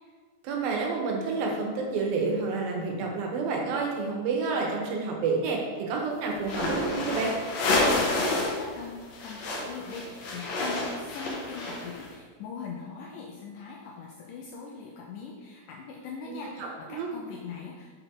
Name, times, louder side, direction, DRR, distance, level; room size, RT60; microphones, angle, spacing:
voice 1, 0.4-5.6 5.9-7.3 16.3-17.1, right 4 dB, 80° right, 0 dB, 2.7 m, -29 dB
sound 1, 6.4-8.6 8.9-12.0, left 2 dB, 65° left, 1.8 m, -29 dB
voice 2, 7.8-17.9, left 5 dB, 80° left, -1 dB, 2.0 m, -41 dB
6.9 x 5.5 x 3.7 m, 1.5 s
omnidirectional pair, 4.1 m